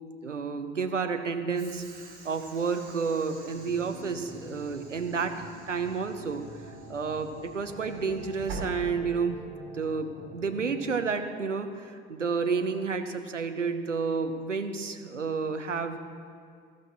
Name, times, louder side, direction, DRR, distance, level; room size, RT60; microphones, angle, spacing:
voice 1, 0.2-6.5 6.9-9.4 9.7-16.0, right 5 dB, 90° right, 7 dB, 0.7 m, -30 dB
Train / Sliding door, 1.6-9.5, right 3 dB, 55° right, 3.7 m, -46 dB
sound 1, 3.4-11.0, equal, 10° left, 3.0 m, -47 dB
17.5 x 13.5 x 2.9 m, 2.2 s
figure-of-eight pair, 65°, 36 cm